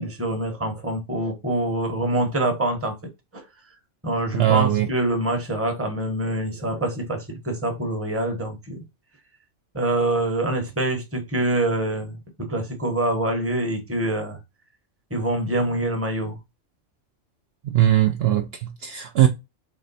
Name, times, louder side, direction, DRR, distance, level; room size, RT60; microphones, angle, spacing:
voice 1, 0.0-3.0 3.3-3.4 4.0-8.8 9.7-14.4 15.1-16.4, right 1 dB, 10° right, 0.9 m, -25 dB
voice 2, 4.3-4.9 17.6-19.3, right 12 dB, 65° right, 0.7 m, -20 dB
3.8 x 3.2 x 4.0 m
omnidirectional pair, 1.3 m